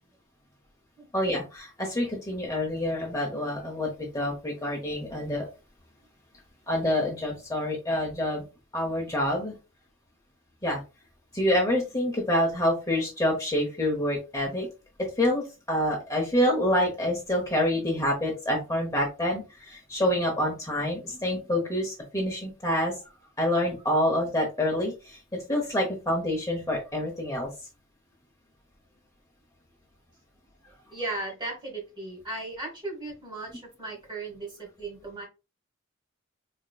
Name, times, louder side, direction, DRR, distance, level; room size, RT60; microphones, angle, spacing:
voice 1, 1.1-3.9 4.1-5.5 6.7-8.4 8.7-9.5 10.6-10.8 11.3-14.7 15.2-22.9 23.4-27.5, left 1 dB, 15° left, -1 dB, 0.9 m, -27 dB
voice 2, 30.9-35.3, right 2 dB, 20° right, 0 dB, 1.4 m, -36 dB
4.2 x 3.0 x 2.3 m, 0.29 s
head